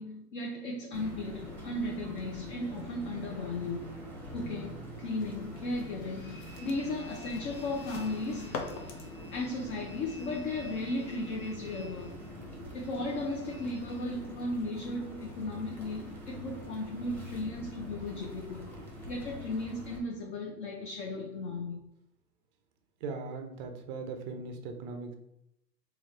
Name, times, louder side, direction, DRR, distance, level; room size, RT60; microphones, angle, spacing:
voice 1, 0.0-3.9 4.3-12.2 12.7-18.6 19.1-21.8, left 2 dB, 45° left, 0 dB, 0.7 m, -36 dB
sound 1, 0.9-20.0, left 1 dB, 5° left, 0.9 m, -45 dB
sound 2, 5.2-11.0, left 4 dB, 70° left, 0.9 m, -46 dB
voice 2, 23.0-25.1, right 4 dB, 30° right, 4 dB, 0.4 m, -39 dB
3.9 x 2.4 x 3.1 m, 0.80 s
hypercardioid pair, 115°, 50 cm